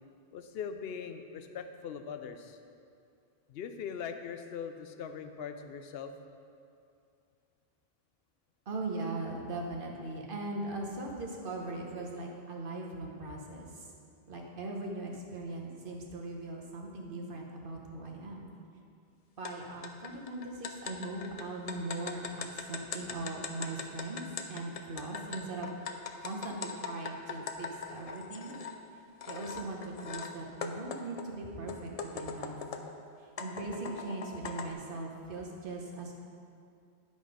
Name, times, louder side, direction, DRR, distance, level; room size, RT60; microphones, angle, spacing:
voice 1, 0.3-2.6 3.5-6.1, left 7 dB, 70° left, 7 dB, 0.8 m, -41 dB
voice 2, 8.7-13.9 14.3-18.4 19.4-24.2 24.5-25.7 26.2-28.5 29.3-32.6 33.4-36.1, right 2 dB, 55° right, 0 dB, 1.2 m, -40 dB
sound 1, 19.4-19.5 19.8-28.8 29.2-30.3 30.6-32.9 33.4-34.7, left 5 dB, 50° left, 0.5 m, -41 dB
11.0 x 4.0 x 5.0 m, 2.4 s
omnidirectional pair, 1.1 m